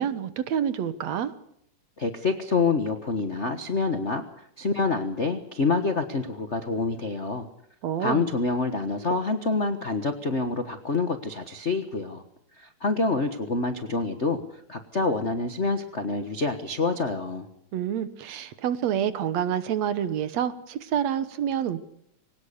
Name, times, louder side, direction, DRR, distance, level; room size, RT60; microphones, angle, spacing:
voice 1, 0.0-1.3 7.8-8.3 17.7-21.8, right 9 dB, 65° right, 13 dB, 2.1 m, -28 dB
voice 2, 2.0-7.5 8.0-12.2 12.6-17.5, left 4 dB, 85° left, 8 dB, 0.6 m, -27 dB
22.5 x 19.0 x 6.7 m, 0.73 s
omnidirectional pair, 3.7 m